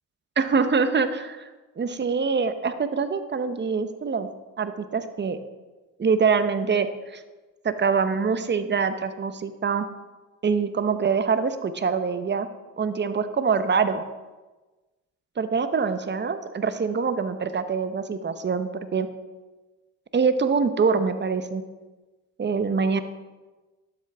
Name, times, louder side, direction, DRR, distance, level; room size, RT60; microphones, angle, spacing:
voice 1, 0.4-1.5 1.8-4.3 4.6-5.4 6.0-6.9 7.1-7.2 7.6-9.9 10.4-12.5 12.8-14.0 15.4-19.1 20.1-21.6 22.4-23.0, right 5 dB, 30° right, 11 dB, 0.9 m, -24 dB
11.5 x 7.8 x 3.5 m, 1.2 s
supercardioid pair, 60°, 35 cm